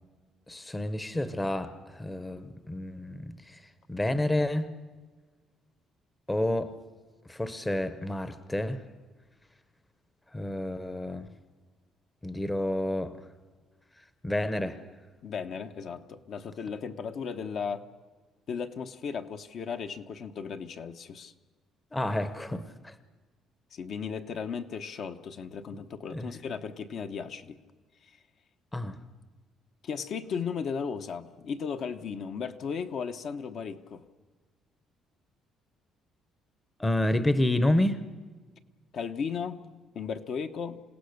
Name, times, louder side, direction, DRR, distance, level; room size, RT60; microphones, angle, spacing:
voice 1, 0.5-3.6 3.9-4.7 6.3-6.8 7.3-8.8 10.3-11.3 12.2-13.2 14.2-14.8 21.9-23.0 26.1-26.3 28.7-29.0 36.8-38.0, left 1 dB, 10° left, 12 dB, 0.9 m, -29 dB
voice 2, 15.2-17.8 18.5-21.3 23.7-27.6 29.8-34.0 38.9-40.8, left 6 dB, 45° left, 8 dB, 1.0 m, -36 dB
28.0 x 17.0 x 6.6 m, 1.3 s
cardioid pair, 165°, 0 cm